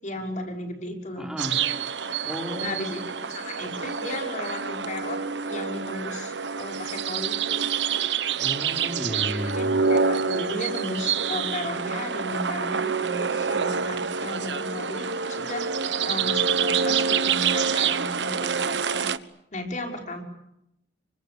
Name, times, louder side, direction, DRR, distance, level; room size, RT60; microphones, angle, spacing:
voice 1, 0.0-1.3 2.6-7.7 9.5-15.7 16.0-19.1 19.5-20.2, left 1 dB, 45° left, 2 dB, 6.0 m, -35 dB
voice 2, 1.2-1.6 2.2-2.8 8.4-9.8, equal, 5° right, 2 dB, 4.8 m, -33 dB
sound 1, 1.4-19.2, right 6 dB, 85° right, 1.2 m, -27 dB
29.5 x 25.0 x 6.9 m, 0.82 s
head